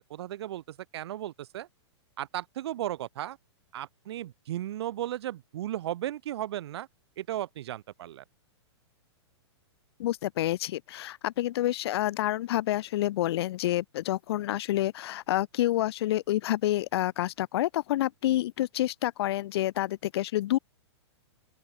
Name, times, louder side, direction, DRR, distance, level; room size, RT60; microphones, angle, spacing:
voice 1, 0.1-1.7 2.2-3.4 3.7-6.9 7.2-8.2, right 13 dB, 65° right, 0.7 m, -35 dB
voice 2, 10.0-20.6, left 14 dB, 60° left, 0.4 m, -28 dB
open air
hypercardioid pair, 120°, 15 cm